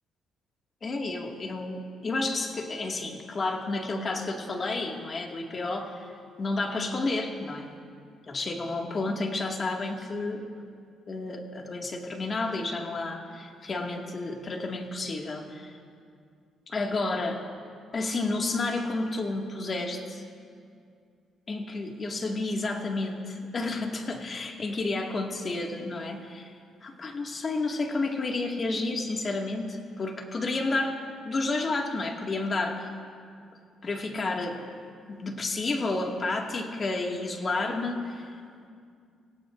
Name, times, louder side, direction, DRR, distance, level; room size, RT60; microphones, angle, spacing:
voice 1, 0.8-6.1 6.4-7.7 8.3-10.4 11.1-15.7 16.7-17.4 17.9-20.3 21.5-26.5 26.8-31.0 31.3-32.9 33.8-34.7 35.1-38.3, left 2 dB, 40° left, 2 dB, 2.0 m, -31 dB
27.0 x 16.5 x 2.6 m, 2.3 s
cardioid pair, 80°, 0 cm